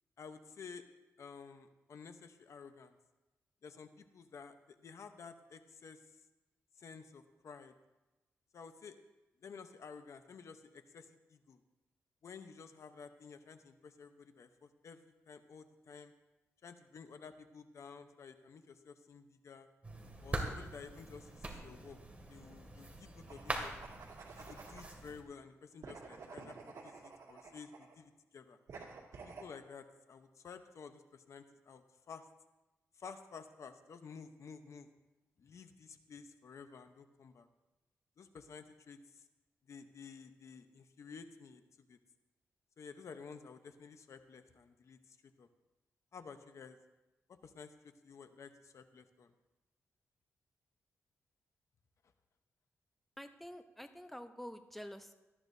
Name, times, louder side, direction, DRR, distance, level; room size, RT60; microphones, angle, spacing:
voice 1, 0.2-0.8 1.2-3.0 3.6-6.0 6.8-7.8 8.5-9.0 9.4-11.6 12.2-16.1 16.6-19.7 20.2-22.0 22.3-23.7 24.3-26.6 26.8-28.6 29.2-32.2 32.9-34.9 35.4-37.5 38.2-39.2 39.7-41.6 41.9-42.0 42.8-45.5 46.1-46.8 47.3-49.3, left 5 dB, 70° left, 8 dB, 0.9 m, -52 dB
sound 1, 19.8-25.2, right 2 dB, 25° right, 2.3 m, -43 dB
sound 2, 23.2-25.0 25.8-28.0 28.7-29.5, right 4 dB, 85° right, 2.3 m, -51 dB
voice 2, 53.2-55.1, equal, 5° left, 7 dB, 0.8 m, -48 dB
18.5 x 14.0 x 2.7 m, 1.1 s
cardioid pair, 85°, 5 cm